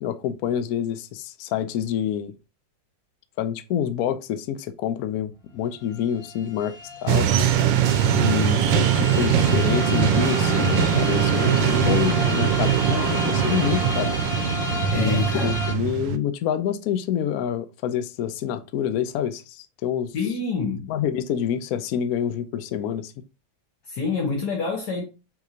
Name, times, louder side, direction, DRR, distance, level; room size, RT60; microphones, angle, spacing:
voice 1, 0.0-2.3 3.4-6.8 7.0-7.3 8.1-14.1 14.9-20.1 20.9-23.1, left 9 dB, 80° left, 0.8 m, -27 dB
sound 1, 5.5-5.6 5.8-15.7, left 2 dB, 20° left, 1.3 m, -31 dB
sound 2, 7.1-16.2, right 9 dB, 75° right, 1.2 m, -21 dB
voice 2, 14.9-15.5 20.1-20.9 23.9-25.0, left 4 dB, 60° left, 1.4 m, -27 dB
5.8 x 3.1 x 2.8 m
omnidirectional pair, 2.1 m